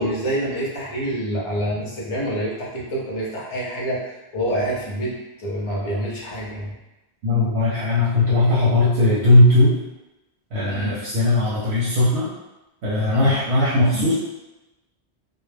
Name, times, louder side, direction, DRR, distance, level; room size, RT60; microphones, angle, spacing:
voice 1, 0.0-4.1 4.3-6.7 10.7-10.9 13.1-13.3, right 1 dB, 35° left, -5 dB, 0.6 m, -27 dB
voice 2, 7.2-9.7 10.5-12.3 12.8-14.1, left 1 dB, 80° right, -9 dB, 0.9 m, -18 dB
2.1 x 2.1 x 3.2 m, 1.0 s
omnidirectional pair, 1.1 m